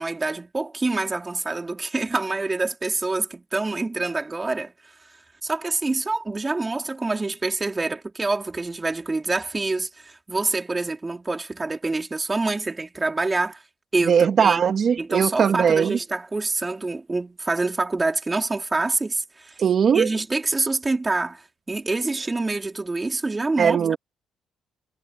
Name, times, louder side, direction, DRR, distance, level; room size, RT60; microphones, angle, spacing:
voice 1, 0.0-4.7 5.4-13.6 13.9-14.6 15.0-19.6 19.9-23.8, right 3 dB, 20° right, 3.4 m, -26 dB
voice 2, 14.0-16.0 19.6-20.1 23.6-24.0, right 7 dB, 55° right, 2.4 m, -19 dB
cardioid pair, 90°, 0 cm